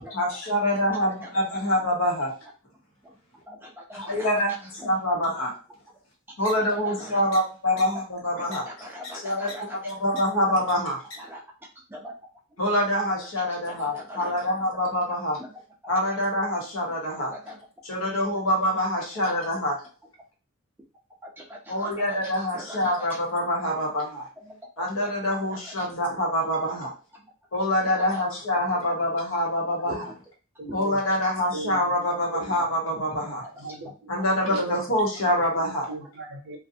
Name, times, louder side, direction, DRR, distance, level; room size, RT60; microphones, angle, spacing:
voice 1, 0.1-2.3 3.9-4.6 4.8-5.5 6.4-8.6 9.2-11.0 12.6-15.4 15.9-17.3 17.8-19.8 21.7-24.2 24.8-26.9 27.5-30.0 30.7-33.4 34.1-35.8, left 1 dB, 80° left, -2 dB, 1.0 m, -25 dB
voice 2, 1.2-1.9 3.5-4.3 4.8-4.9 5.4-5.5 6.6-7.2 7.7-7.8 8.4-9.8 10.4-10.5 11.2-11.4 11.9-12.1 13.4-14.5 15.4-15.6 17.2-17.7 19.0-19.5 21.2-23.2 23.7-23.8 24.4-24.8 25.5-25.9 26.4-26.5 27.1-27.3 27.8-28.2 29.6-29.7 31.2-31.3 34.2-34.4 35.9-36.1, equal, 10° right, -1 dB, 0.5 m, -42 dB
sound 1, 6.4-6.5 7.3-7.4 7.8-7.9 8.5-8.6 9.0-9.1 9.5-9.6 9.9-10.2 10.7-10.8 11.1-11.2, left 3 dB, 65° left, 0.7 m, -39 dB
voice 3, 29.8-30.1 30.6-31.0 31.5-32.0 32.3-33.2 33.5-34.2 34.5-34.7 35.3-36.6, right 2 dB, 55° right, 1 dB, 0.7 m, -38 dB
2.5 x 2.3 x 2.6 m, 0.35 s
head